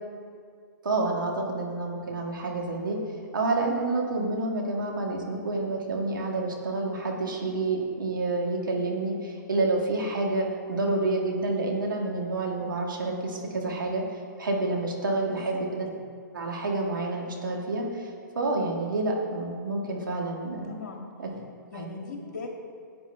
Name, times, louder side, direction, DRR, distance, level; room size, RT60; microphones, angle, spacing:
voice 1, 0.8-3.0 3.3-14.0 14.4-15.9 16.3-18.1 18.4-20.8 21.2-21.4 21.7-21.9, right 2 dB, 75° right, -2 dB, 1.9 m, -28 dB
voice 2, 15.3-15.6 20.7-21.1 21.7-22.5, left 4 dB, 60° left, -2 dB, 2.1 m, -40 dB
15.5 x 8.9 x 2.3 m, 2.2 s
figure-of-eight pair, 120°, 11 cm